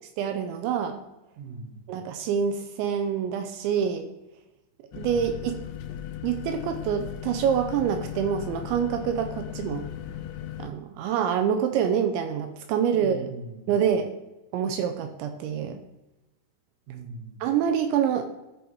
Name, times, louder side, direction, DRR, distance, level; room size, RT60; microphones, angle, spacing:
voice 1, 0.2-1.0 1.9-4.1 4.9-5.6 6.2-9.9 10.6-13.2 13.7-14.1 14.5-15.8 17.4-18.2, right 8 dB, 80° right, 7 dB, 2.8 m, -26 dB
voice 2, 1.4-1.8 5.1-5.4 12.9-13.8 16.9-17.4, right 4 dB, 55° right, 1 dB, 1.7 m, -40 dB
sound 1, 4.9-10.7, left 10 dB, 80° left, 2.7 m, -37 dB
13.5 x 4.7 x 4.6 m, 1.0 s
omnidirectional pair, 5.6 m